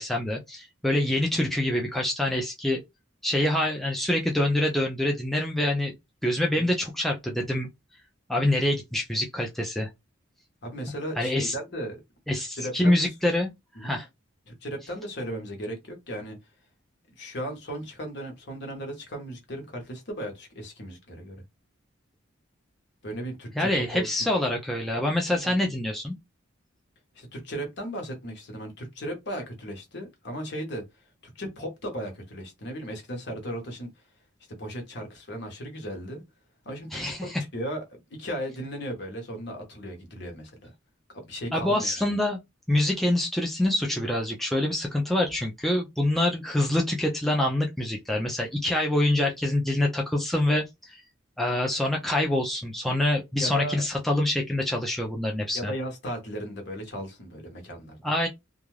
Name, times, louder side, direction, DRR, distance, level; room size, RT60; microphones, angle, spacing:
voice 1, 0.0-2.8 3.2-5.9 6.2-7.7 8.3-9.9 11.2-11.5 12.3-13.5 13.8-14.1 23.6-26.1 36.9-37.4 41.5-42.4 42.7-51.0 51.4-55.7 58.0-58.3, left 1 dB, ahead, 0.3 m, -26 dB
voice 2, 10.6-12.0 12.3-13.0 13.8-14.0 14.5-16.4 17.2-21.3 23.0-24.3 25.3-25.6 27.1-30.8 31.2-33.9 34.6-36.2 36.6-37.8 38.1-40.7 41.1-42.1 53.4-53.8 55.5-58.0, equal, 55° left, 1.0 m, -36 dB
2.4 x 2.3 x 3.1 m
head